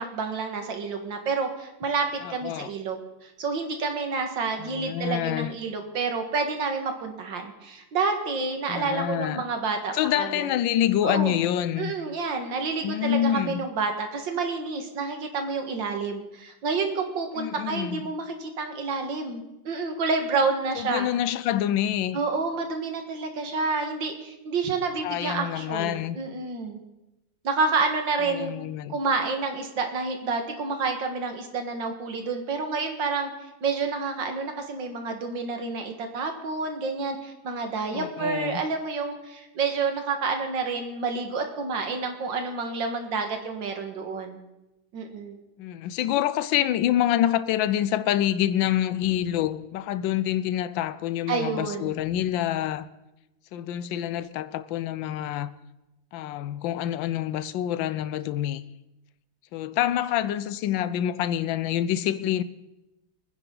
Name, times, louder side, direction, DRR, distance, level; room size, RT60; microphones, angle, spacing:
voice 1, 0.0-10.5 11.0-11.4 11.8-21.1 22.1-26.8 27.4-28.5 28.9-44.4 44.9-45.4 51.3-51.9, right 4 dB, 70° right, 2.4 m, -29 dB
voice 2, 2.2-2.7 4.6-5.5 8.7-9.5 9.9-11.9 12.8-13.6 17.4-18.1 20.8-22.2 25.0-26.2 28.3-29.0 37.9-38.6 45.6-52.9 53.5-55.5 56.1-58.6 59.5-62.4, left 12 dB, 80° left, 1.4 m, -27 dB
25.0 x 10.0 x 3.9 m
omnidirectional pair, 2.1 m